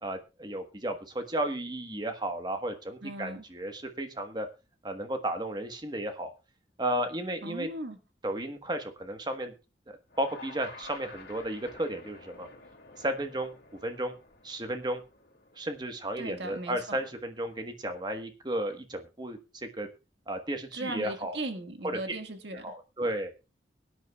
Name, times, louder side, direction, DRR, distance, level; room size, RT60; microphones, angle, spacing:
voice 1, 0.0-4.5 4.8-6.3 6.8-7.7 8.2-9.5 9.9-12.5 13.0-13.5 13.8-14.1 14.4-15.0 15.6-19.9 20.3-21.4 22.1-22.2 22.6-23.3, right 1 dB, 25° right, 6 dB, 1.3 m, -33 dB
voice 2, 3.0-3.4 7.4-8.0 16.2-17.0 20.7-22.7, right 2 dB, 75° right, 5 dB, 1.8 m, -38 dB
sound 1, 10.1-16.3, left 3 dB, 65° left, 2.3 m, -51 dB
22.5 x 9.8 x 2.3 m, 0.30 s
head